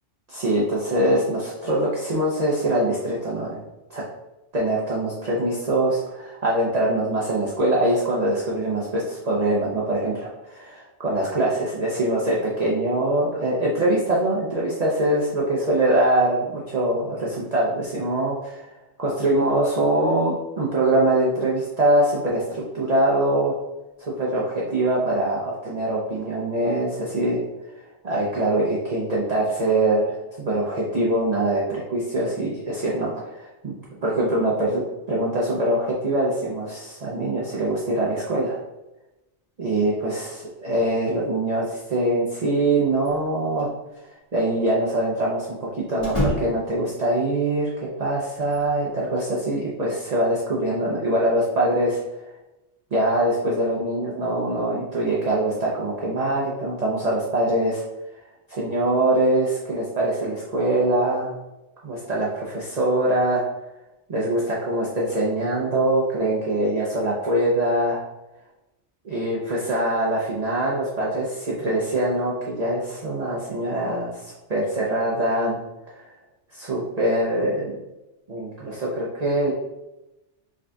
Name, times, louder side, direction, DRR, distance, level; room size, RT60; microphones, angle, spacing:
voice 1, 0.3-3.6 3.9-4.0 4.5-18.7 19.0-23.5 24.1-27.4 28.0-33.8 34.0-34.8 35.1-38.6 39.6-43.7 44.3-52.0 52.9-57.8 58.5-61.4 61.8-63.4 64.1-68.0 69.0-75.6 75.9-76.0 76.5-77.8 78.3-79.5, right 1 dB, 40° right, -5 dB, 0.8 m, -23 dB
sound 1, 43.0-43.7 44.0-44.1 46.0-46.8 48.4-49.3, equal, 25° left, 1.7 m, -29 dB
5.0 x 3.9 x 2.3 m, 0.96 s
omnidirectional pair, 1.2 m